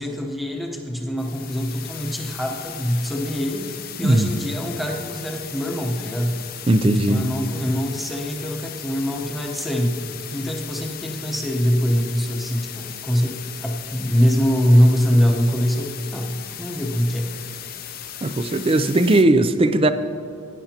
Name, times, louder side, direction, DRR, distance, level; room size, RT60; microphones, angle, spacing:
voice 1, 0.0-6.4 6.8-10.0 10.3-17.3, equal, ahead, 1 dB, 0.9 m, -23 dB
sound 1, 1.2-19.2, left 10 dB, 40° left, 0.6 m, -37 dB
voice 2, 6.7-7.3 18.2-19.9, right 2 dB, 25° right, 11 dB, 0.4 m, -18 dB
17.5 x 10.5 x 2.9 m, 2.4 s
head